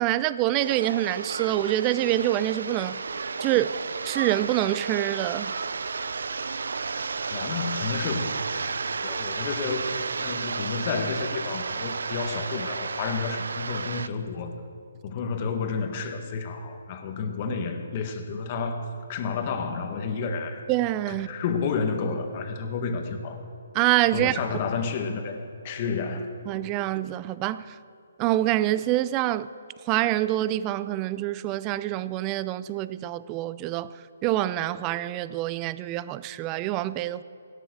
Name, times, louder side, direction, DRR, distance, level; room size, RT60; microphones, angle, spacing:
voice 1, 0.0-3.0 3.4-3.8 4.0-5.5 20.7-21.3 23.7-24.4 26.5-27.8 28.2-29.5 29.9-37.2, right 15 dB, 25° right, 0.4 m, -26 dB
sound 1, 0.6-14.1, right 4 dB, 75° right, 0.6 m, -32 dB
voice 2, 7.3-8.3 9.0-9.9 10.2-14.5 15.0-20.6 21.1-23.4 24.1-26.3, left 5 dB, 35° left, 1.7 m, -30 dB
16.5 x 12.0 x 6.4 m
hypercardioid pair, 145°, 0 cm